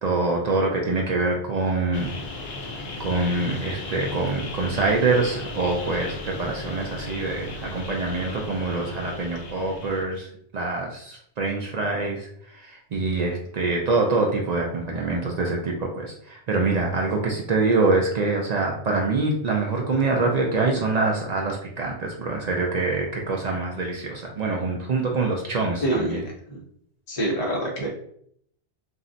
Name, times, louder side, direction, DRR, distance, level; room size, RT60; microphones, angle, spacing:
voice 1, 0.0-2.1 3.0-10.3 10.5-12.3 12.6-26.2, right 3 dB, 55° right, 0 dB, 0.4 m, -25 dB
sound 1, 1.9-10.0, left 2 dB, 65° left, 0.9 m, -36 dB
voice 2, 25.8-26.2 26.5-26.6 27.1-27.9, right 1 dB, 40° left, -3 dB, 0.6 m, -25 dB
2.5 x 2.1 x 3.8 m, 0.67 s
omnidirectional pair, 1.1 m